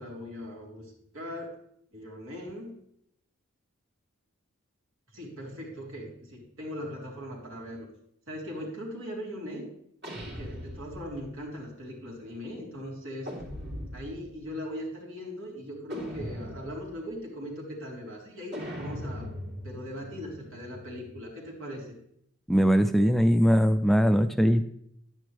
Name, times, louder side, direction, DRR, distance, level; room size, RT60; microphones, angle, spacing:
voice 1, 0.0-1.6 1.9-2.8 5.1-7.9 8.3-9.7 10.2-13.3 13.9-19.3 19.6-22.0, equal, 85° right, -3 dB, 3.5 m, -39 dB
sound 1, 10.0-11.3 13.2-14.3 15.9-17.0 18.5-21.2, equal, 60° right, 3.0 m, -40 dB
voice 2, 22.5-24.7, equal, ahead, 9 dB, 0.3 m, -21 dB
11.0 x 9.5 x 3.4 m, 0.71 s
head